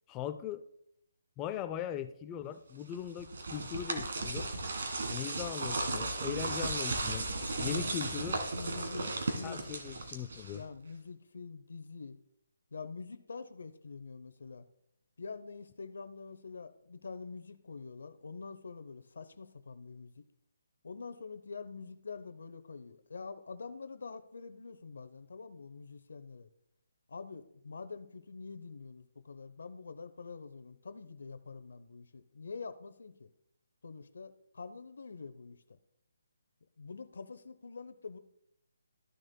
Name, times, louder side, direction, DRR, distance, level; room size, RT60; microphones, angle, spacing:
voice 1, 0.1-0.6 1.4-4.5 5.1-7.3 7.6-8.4 9.4-10.6, left 10 dB, 15° left, 11 dB, 0.3 m, -39 dB
sound 1, 2.9-10.7, right 2 dB, 60° right, 1.7 m, -35 dB
voice 2, 7.6-8.0 8.5-10.0 10.5-12.2 12.7-14.6 15.2-20.2 20.8-26.5 27.1-33.3 33.8-35.8 36.8-38.2, left 4 dB, 70° left, 11 dB, 0.7 m, -46 dB
13.5 x 6.4 x 2.2 m, 0.76 s
hypercardioid pair, 170°, 0 cm